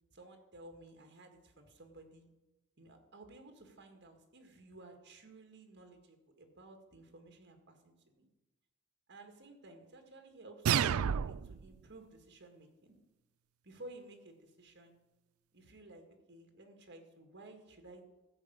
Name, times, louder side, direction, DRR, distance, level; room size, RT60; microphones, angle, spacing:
voice 1, 0.1-2.3 2.8-8.3 9.1-12.9 13.6-15.0 15.5-18.0, right 2 dB, 55° right, 4 dB, 2.0 m, -55 dB
sound 1, 10.7-11.7, right 8 dB, 80° right, 0.4 m, -30 dB
14.5 x 5.2 x 8.1 m, 1.1 s
head